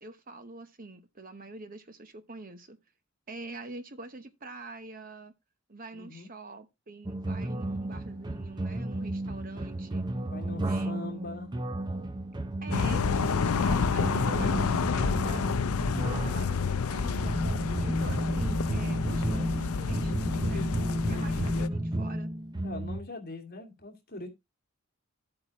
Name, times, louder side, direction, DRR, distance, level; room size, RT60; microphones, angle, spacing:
voice 1, 0.0-2.8 3.3-5.3 5.7-10.1 10.7-11.3 12.6-15.5 16.0-17.5 17.8-20.7 21.1-22.3, right 2 dB, 40° right, 0.9 m, -45 dB
voice 2, 5.9-6.3 10.2-11.5 14.2-15.5 15.8-16.8 17.9-18.2 22.6-24.3, left 2 dB, 40° left, 2.4 m, -43 dB
sound 1, 7.1-23.0, right 1 dB, 20° right, 0.6 m, -33 dB
sound 2, 12.7-21.7, left 5 dB, 80° left, 0.5 m, -29 dB
11.5 x 8.4 x 3.0 m
head